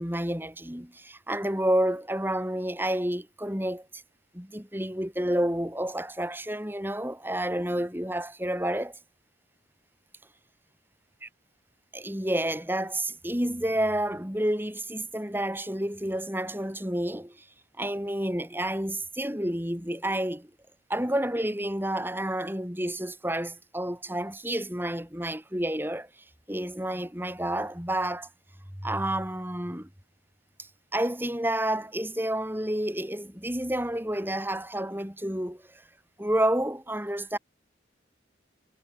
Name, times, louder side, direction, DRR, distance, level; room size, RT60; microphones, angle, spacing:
voice 1, 0.0-3.9 4.3-9.0 11.9-17.4 17.8-20.5 20.9-26.1 26.5-28.3 28.8-29.9 30.6-35.8 36.2-37.4, right 1 dB, 10° right, 5.9 m, -30 dB
head